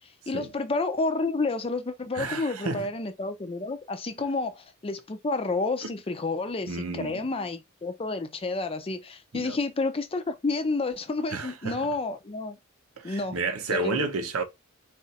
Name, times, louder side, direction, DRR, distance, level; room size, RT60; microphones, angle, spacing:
voice 1, 0.3-12.6 13.0-13.4 13.7-14.1, left 3 dB, 25° left, 0.5 m, -30 dB
voice 2, 2.1-2.9 5.8-5.9 6.6-7.3 9.3-9.6 11.3-12.0 13.0-14.4, right 3 dB, 75° right, 0.8 m, -31 dB
4.1 x 2.5 x 4.1 m
head